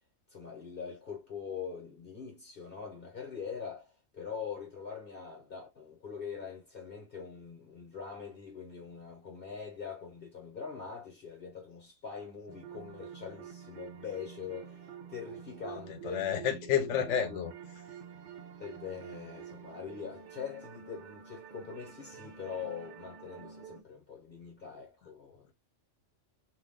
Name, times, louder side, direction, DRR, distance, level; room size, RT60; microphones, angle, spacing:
voice 1, 0.3-16.3 16.6-17.4 18.6-25.5, left 6 dB, 50° left, 1.1 m, -43 dB
sound 1, 12.5-23.8, right 8 dB, 50° right, 0.6 m, -48 dB
voice 2, 16.0-17.5, left 8 dB, 80° left, 0.9 m, -30 dB
2.6 x 2.4 x 3.5 m
omnidirectional pair, 1.2 m